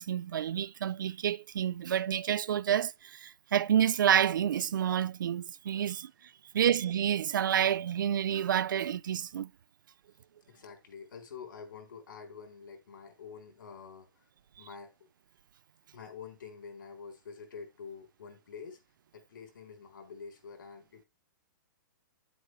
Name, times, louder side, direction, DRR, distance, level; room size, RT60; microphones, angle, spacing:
voice 1, 0.0-6.1 6.5-9.5, right 9 dB, 80° right, 0.4 m, -29 dB
voice 2, 10.5-14.3 14.6-14.9 15.9-18.8 19.1-21.1, left 6 dB, 85° left, 4.1 m, -47 dB
10.5 x 7.8 x 3.3 m
hypercardioid pair, 175°, 11 cm